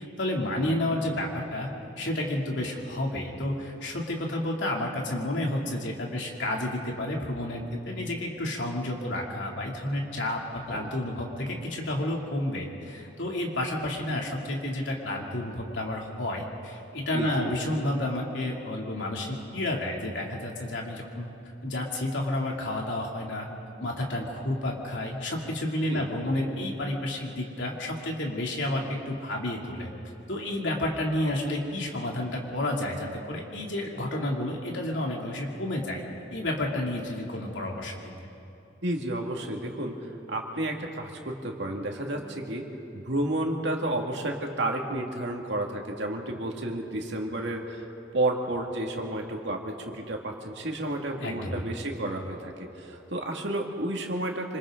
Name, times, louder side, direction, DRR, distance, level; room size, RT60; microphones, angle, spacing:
voice 1, 0.2-1.7 2.0-10.4 10.7-21.3 21.6-23.5 23.8-29.9 30.3-36.0 36.3-38.1 51.2-51.6, left 1 dB, 85° left, -1 dB, 2.9 m, -30 dB
voice 2, 17.1-17.5 25.9-26.0 38.8-39.9 40.3-42.6 42.9-47.9 48.1-54.6, right 1 dB, 75° right, 1 dB, 2.2 m, -31 dB
26.5 x 26.5 x 3.9 m, 2.9 s
head